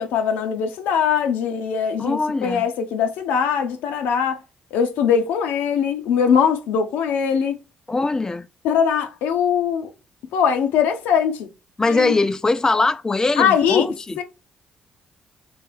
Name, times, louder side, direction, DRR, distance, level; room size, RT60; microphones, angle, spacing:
voice 1, 0.0-4.4 4.7-7.6 8.6-9.9 10.3-11.5 11.9-12.1 13.4-13.9 14.2-14.3, left 7 dB, 75° left, 0.6 m, -21 dB
voice 2, 2.0-2.6 7.9-8.5 11.8-14.2, left 3 dB, 20° left, 0.3 m, -21 dB
3.3 x 3.1 x 3.2 m
hypercardioid pair, 45°, 3 cm